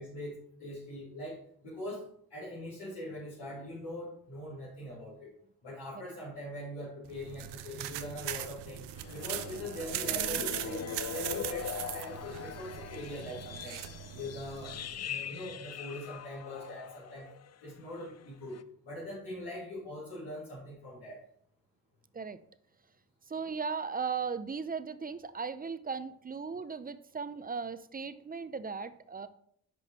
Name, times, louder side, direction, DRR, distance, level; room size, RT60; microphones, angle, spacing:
voice 1, 0.0-2.0 2.3-5.3 5.6-13.8 14.1-14.8 15.0-17.3 17.6-18.6 18.8-21.2, left 1 dB, 85° left, -10 dB, 2.7 m, -42 dB
sound 1, 7.0-14.9, right 12 dB, 90° right, 0.5 m, -39 dB
sound 2, 8.9-17.5 17.8-18.1 18.5-18.6, left 8 dB, 40° left, 0.5 m, -42 dB
voice 2, 23.3-29.3, right 5 dB, 20° right, 13 dB, 0.5 m, -37 dB
5.9 x 5.2 x 4.2 m, 0.66 s
supercardioid pair, 50°, 40 cm